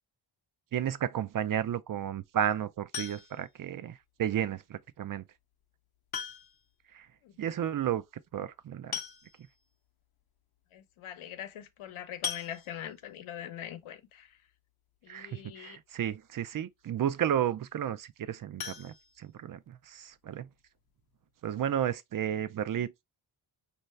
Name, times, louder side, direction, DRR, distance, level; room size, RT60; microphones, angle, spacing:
voice 1, 0.7-5.2 6.9-7.1 7.4-8.0 8.3-8.9 15.1-20.5 21.4-22.9, right 10 dB, 45° right, 0.5 m, -32 dB
sound 1, 2.9-3.6 5.0-5.1 6.1-6.7 7.0-7.1 7.4-7.5 8.5-8.6 8.9-9.6 10.2-10.3 10.6-10.8 12.2-13.1 18.5-19.8 20.1-20.2 20.7-20.8 21.1-21.2, left 8 dB, 50° left, 0.8 m, -39 dB
voice 2, 10.7-14.4 15.0-15.8, left 10 dB, 80° left, 0.9 m, -43 dB
5.4 x 2.8 x 3.2 m
cardioid pair, 115°, 48 cm